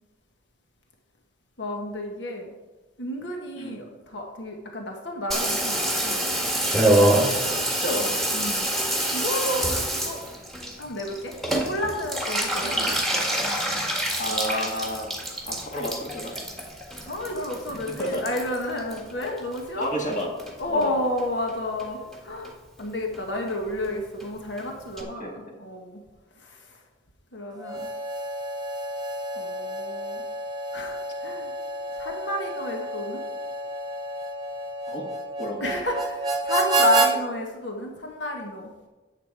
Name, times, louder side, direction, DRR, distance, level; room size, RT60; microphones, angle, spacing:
voice 1, 1.6-2.5 3.0-6.5 8.3-8.7 9.1-10.2 10.8-11.3 11.7-12.8 17.0-19.9 20.6-22.5 22.8-26.0 26.4-26.6 27.3-27.9 29.4-30.2 30.7-31.0 31.2-31.5 32.0-33.2 35.6-38.7, left 1 dB, 85° left, 1 dB, 1.5 m, -30 dB
Water tap faucet / Bathtub (filling or washing), 5.3-19.9 20.1-20.9 21.2-21.3 21.5-21.6 21.8-22.2 22.5-22.6 22.8-22.9 23.1-23.2 23.5-23.6 23.8-23.9 24.2-24.3 24.6-24.7 25.0-25.1, right 1 dB, ahead, 1.5 m, -26 dB
voice 2, 7.5-8.2 12.7-13.0 14.2-15.1 15.5-16.4 17.7-18.2 19.8-20.3 20.7-21.0 25.2-25.3 34.9-35.1 35.4-35.7, equal, 45° left, -1 dB, 1.9 m, -31 dB
Harmonica, 27.6-37.1, right 2 dB, 20° right, 1.1 m, -29 dB
10.0 x 7.4 x 4.8 m, 1.2 s
head